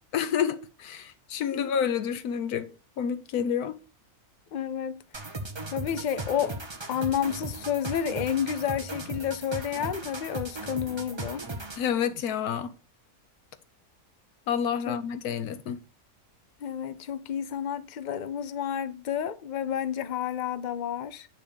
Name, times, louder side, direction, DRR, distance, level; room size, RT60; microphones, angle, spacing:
voice 1, 0.1-2.7 3.0-3.8 11.8-12.7 14.5-15.8, left 8 dB, 90° left, 1.3 m, -29 dB
voice 2, 4.5-5.0 5.7-6.6 6.9-11.4 14.9-15.0 16.6-21.3, left 9 dB, 55° left, 0.5 m, -30 dB
sound 1, 5.1-11.9, right 2 dB, 20° right, 0.9 m, -37 dB
9.7 x 3.6 x 6.9 m
omnidirectional pair, 1.6 m